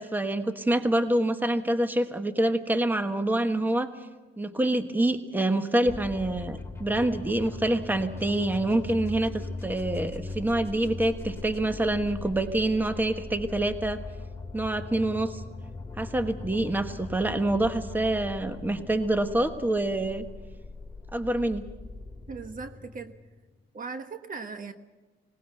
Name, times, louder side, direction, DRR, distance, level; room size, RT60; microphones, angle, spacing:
voice 1, 0.0-3.9 4.4-14.0 14.5-15.4 16.0-20.2 21.1-21.7, right 1 dB, 10° right, 8 dB, 1.3 m, -26 dB
sound 1, 5.9-23.6, left 3 dB, 10° left, 2.9 m, -40 dB
voice 2, 22.3-23.1 23.7-24.7, right 4 dB, 45° right, 8 dB, 1.3 m, -38 dB
19.0 x 18.5 x 8.0 m, 1.2 s
cardioid pair, 90°, 20 cm